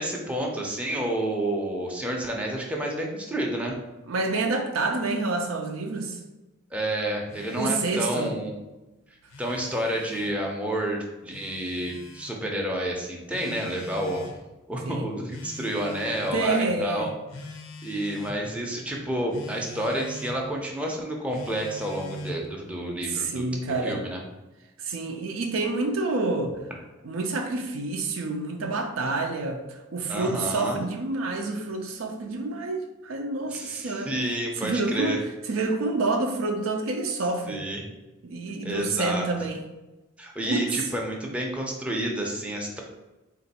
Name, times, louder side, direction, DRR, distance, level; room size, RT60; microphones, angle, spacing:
voice 1, 0.0-3.8 6.7-8.5 9.4-14.2 14.7-17.1 17.8-24.2 30.1-30.8 33.5-35.2 37.5-37.8 38.6-39.3 40.2-42.8, right 1 dB, 5° right, -1 dB, 0.5 m, -30 dB
voice 2, 4.1-6.2 7.6-8.3 14.8-15.1 16.3-17.1 23.1-24.0 24.8-26.6 27.0-34.1 34.6-35.2 35.5-37.6 38.2-39.6 40.4-40.6, right 3 dB, 80° right, 4 dB, 0.5 m, -28 dB
Telephone, 7.3-8.4 9.1-10.4 11.3-12.4 13.3-14.4 15.3-16.4 17.3-18.4 19.3-20.4 21.3-22.5, left 2 dB, 75° left, 0.6 m, -42 dB
3.8 x 2.5 x 4.0 m, 1.0 s
head